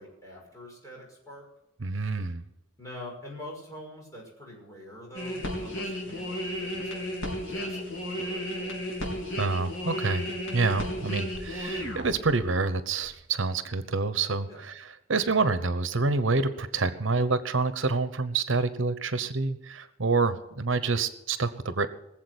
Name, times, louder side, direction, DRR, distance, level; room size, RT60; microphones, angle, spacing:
voice 1, 0.0-1.5 2.8-7.1 7.5-8.8 14.4-14.6, left 1 dB, 15° left, -2 dB, 6.2 m, -45 dB
voice 2, 1.8-2.4 9.4-10.2 10.5-21.9, right 3 dB, 75° right, 12 dB, 1.0 m, -27 dB
sound 1, 5.1-12.6 13.0-13.2, equal, 80° left, 4.1 m, -34 dB
20.0 x 7.5 x 8.1 m, 0.87 s
head